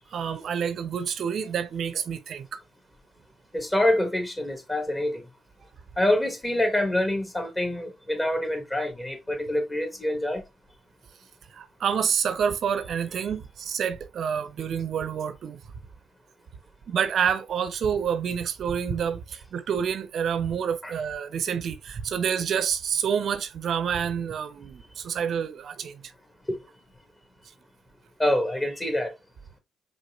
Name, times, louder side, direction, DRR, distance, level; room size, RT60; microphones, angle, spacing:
voice 1, 0.1-2.6 11.5-15.6 16.9-26.1, right 7 dB, 55° right, 0.6 m, -28 dB
voice 2, 3.5-5.2 6.0-10.4 20.8-20.9 26.5-26.6 28.2-29.1, left 1 dB, 20° left, 1.9 m, -26 dB
5.2 x 3.6 x 2.4 m
hypercardioid pair, 45°, 0 cm